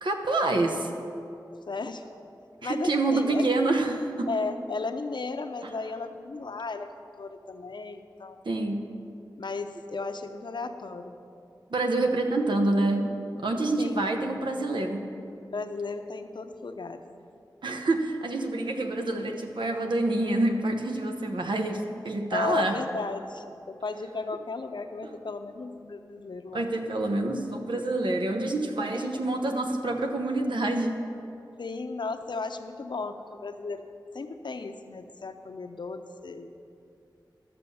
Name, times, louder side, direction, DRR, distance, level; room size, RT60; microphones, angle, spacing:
voice 1, 0.0-0.9 2.6-4.3 8.4-8.9 11.7-15.2 17.6-22.8 26.5-30.9, right 2 dB, 85° right, 4 dB, 1.0 m, -27 dB
voice 2, 1.7-2.0 2.6-3.4 4.3-8.4 9.4-11.2 13.8-14.0 15.5-17.0 22.3-26.7 28.9-29.1 31.6-33.9 34.1-36.5, left 3 dB, 75° left, 7 dB, 0.7 m, -35 dB
13.0 x 6.9 x 7.0 m, 2.6 s
wide cardioid pair, 70°, 8 cm